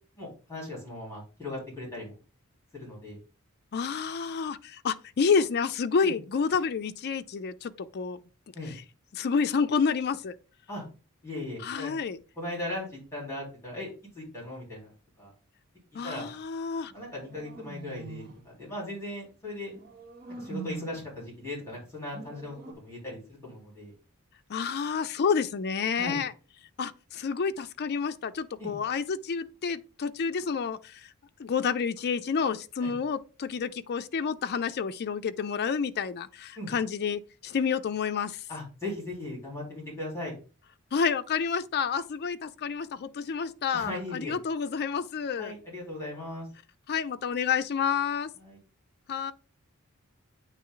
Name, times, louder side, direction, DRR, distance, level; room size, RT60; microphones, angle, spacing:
voice 1, 0.2-2.2 2.7-3.2 6.0-6.2 8.5-8.7 10.7-10.8 11.2-11.9 12.4-14.9 15.2-15.3 16.0-16.3 16.9-19.7 20.4-23.9 25.9-26.2 28.6-28.7 32.8-32.9 36.6-36.7 38.5-40.3 43.7-44.3 45.4-46.5 48.4-48.6, left 1 dB, 15° left, 3.7 m, -38 dB
voice 2, 3.7-8.2 8.7-8.8 9.1-10.4 11.6-12.2 15.9-16.9 24.5-26.3 26.8-31.1 31.4-38.4 40.9-45.5 46.9-48.3 49.1-49.3, left 6 dB, 50° left, 0.4 m, -29 dB
sound 1, 16.9-18.5 19.7-21.2 22.1-22.7, right 3 dB, 50° right, 1.6 m, -43 dB
8.9 x 3.1 x 3.8 m
head